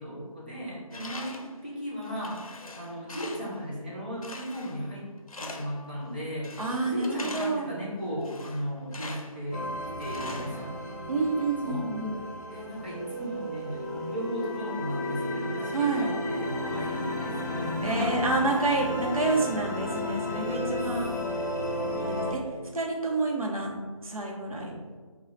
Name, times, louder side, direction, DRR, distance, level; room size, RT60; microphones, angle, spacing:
voice 1, 0.0-5.1 5.4-9.7 10.0-10.8 11.6-11.8 12.5-18.2 21.3-21.5, equal, 15° right, -8 dB, 0.5 m, -36 dB
Tools, 0.9-1.6 2.0-3.6 4.2-4.9 5.3-5.8 6.4-7.7 8.2-9.4 10.0-11.1, left 2 dB, 80° left, 0.6 m, -43 dB
voice 2, 6.6-7.7 11.1-12.2 15.7-16.1 17.8-21.1 21.9-22.4 22.7-23.8 24.0-24.7, right 3 dB, 80° right, -1 dB, 0.9 m, -28 dB
sound 1, 9.5-22.3, left 1 dB, 30° left, 0.6 m, -33 dB
4.0 x 2.3 x 3.1 m, 1.4 s
figure-of-eight pair, 175°, 18 cm